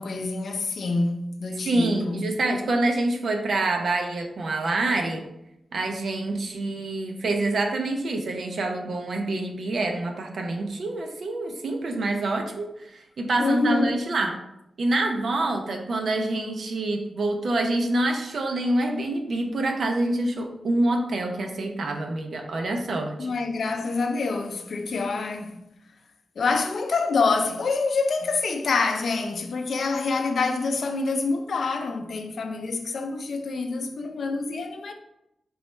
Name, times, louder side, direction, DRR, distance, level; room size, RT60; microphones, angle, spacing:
voice 1, 0.0-2.2 13.4-14.0 23.2-25.6 26.4-34.9, left 4 dB, 60° left, 0.4 m, -26 dB
voice 2, 1.7-5.2 5.7-14.4 14.8-23.3, right 2 dB, 55° right, 0.6 m, -26 dB
4.5 x 3.1 x 3.1 m
wide cardioid pair, 165°, 0 cm